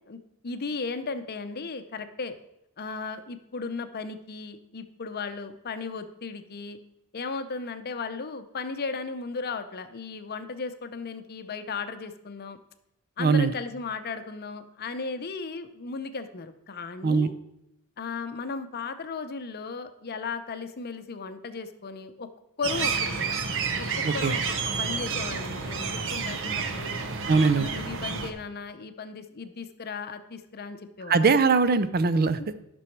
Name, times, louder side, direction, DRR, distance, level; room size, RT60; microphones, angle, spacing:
voice 1, 0.1-2.4 2.8-6.8 7.1-12.6 13.2-17.3 18.0-22.3 22.6-23.2 23.8-24.4 24.8-27.0 27.3-31.3 32.4-32.5, left 4 dB, 45° left, 10 dB, 0.7 m, -36 dB
voice 2, 13.2-13.5 17.0-17.3 24.0-24.3 27.3-27.7 31.1-32.4, right 4 dB, 45° right, 13 dB, 0.5 m, -21 dB
sound 1, 22.6-28.3, right 5 dB, 60° right, 0.9 m, -30 dB
11.5 x 6.2 x 4.6 m, 0.82 s
head